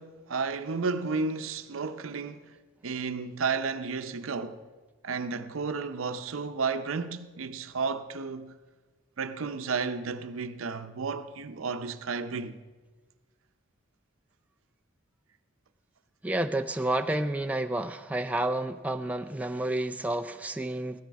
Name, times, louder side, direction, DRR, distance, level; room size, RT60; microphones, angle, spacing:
voice 1, 0.0-2.5 2.8-4.6 5.0-8.5 9.2-12.6, right 4 dB, 85° right, 0.7 m, -32 dB
voice 2, 16.2-21.0, right 1 dB, 5° right, 0.3 m, -30 dB
15.0 x 13.0 x 4.7 m
head